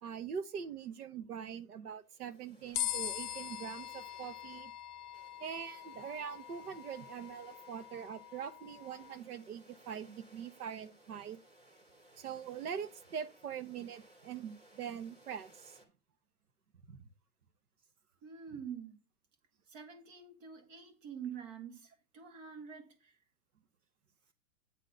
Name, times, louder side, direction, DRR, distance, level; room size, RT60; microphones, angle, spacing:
voice 1, 0.0-4.7 5.4-11.4 12.2-15.8 16.9-17.0, right 7 dB, 80° right, 1.1 m, -43 dB
sound 1, 2.0-15.9, right 1 dB, 15° right, 2.2 m, -62 dB
sound 2, 2.7-9.2, left 12 dB, 90° left, 0.5 m, -42 dB
voice 2, 18.2-19.0 19.7-23.2, right 7 dB, 55° right, 2.4 m, -46 dB
8.2 x 3.9 x 6.6 m
hypercardioid pair, 125°, 44 cm